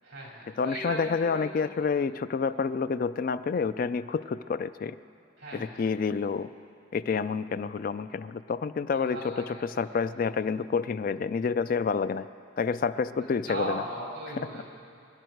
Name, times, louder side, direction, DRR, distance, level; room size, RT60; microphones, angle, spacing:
voice 1, 0.0-1.5 5.4-5.8 8.9-9.7 13.2-14.6, right 1 dB, 55° right, -5 dB, 5.0 m, -38 dB
voice 2, 0.6-4.9 5.5-6.5 6.9-12.3 12.6-13.8, left 5 dB, 45° left, 13 dB, 0.3 m, -29 dB
26.0 x 11.0 x 4.6 m, 2.5 s
head